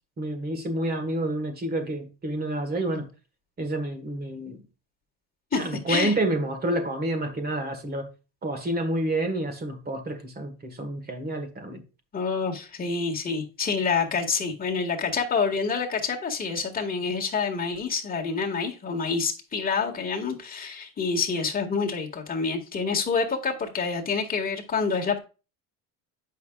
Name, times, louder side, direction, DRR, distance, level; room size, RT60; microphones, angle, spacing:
voice 1, 0.2-3.1 3.6-4.6 5.5-8.1 8.4-11.8, right 1 dB, 25° right, 1.5 m, -29 dB
voice 2, 5.5-6.1 12.1-25.2, left 5 dB, 25° left, 1.7 m, -27 dB
8.3 x 5.8 x 2.3 m
cardioid pair, 125°, 36 cm